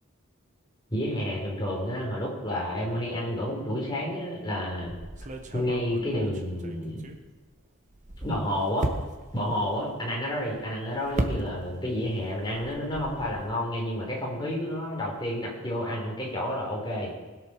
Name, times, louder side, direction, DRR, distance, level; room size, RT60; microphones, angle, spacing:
voice 1, 0.9-4.9 5.5-7.0 8.2-8.9 9.3-17.1, equal, 20° left, -2 dB, 4.1 m, -30 dB
sound 1, 4.8-7.5 7.9-12.0 12.2-13.5, right 1 dB, 35° right, 1.2 m, -36 dB
20.5 x 8.3 x 6.3 m, 1.3 s
head